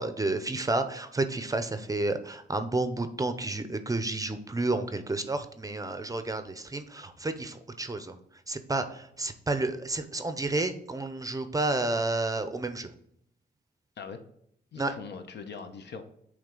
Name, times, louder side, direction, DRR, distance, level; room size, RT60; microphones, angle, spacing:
voice 1, 0.0-8.2 8.5-12.9 14.8-14.9, right 2 dB, 20° right, 9 dB, 0.5 m, -31 dB
voice 2, 14.7-16.0, left 5 dB, 70° left, 7 dB, 0.8 m, -41 dB
8.7 x 3.2 x 3.8 m, 0.72 s
wide cardioid pair, 140°, 18 cm